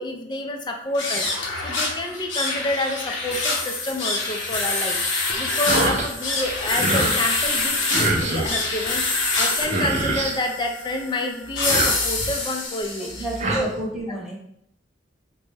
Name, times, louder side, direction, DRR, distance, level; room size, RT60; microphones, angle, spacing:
voice 1, 0.0-13.1 13.5-13.7, left 1 dB, 25° left, 3 dB, 0.4 m, -29 dB
sound 1, 0.9-13.4, left 3 dB, 90° left, 0.8 m, -26 dB
sound 2, 5.7-6.1 6.4-7.2 7.9-8.6 9.4-9.5 9.6-10.4 11.5-12.4 13.1-13.6, right 2 dB, 40° right, 0.6 m, -25 dB
voice 2, 13.0-14.4, right 1 dB, ahead, -6 dB, 1.0 m, -31 dB
4.0 x 2.2 x 3.3 m, 0.72 s
head